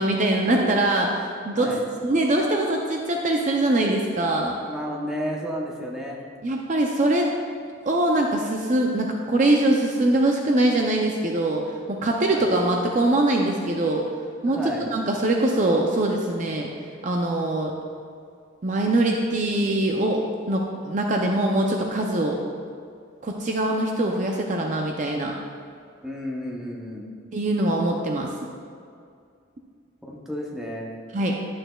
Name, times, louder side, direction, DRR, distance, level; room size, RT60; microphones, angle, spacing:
voice 1, 0.0-1.7 2.0-4.5 6.4-7.3 7.9-11.6 11.9-14.0 14.4-16.7 17.0-17.7 18.6-20.2 20.5-22.4 23.2-25.3 27.3-28.3 31.1-31.3, right 1 dB, 35° right, 1 dB, 0.4 m, -23 dB
voice 2, 1.5-1.8 4.6-6.2 12.3-12.5 14.6-14.9 26.0-27.1 30.0-30.9, equal, 5° right, -3 dB, 0.8 m, -32 dB
11.0 x 6.4 x 2.3 m, 2.3 s
head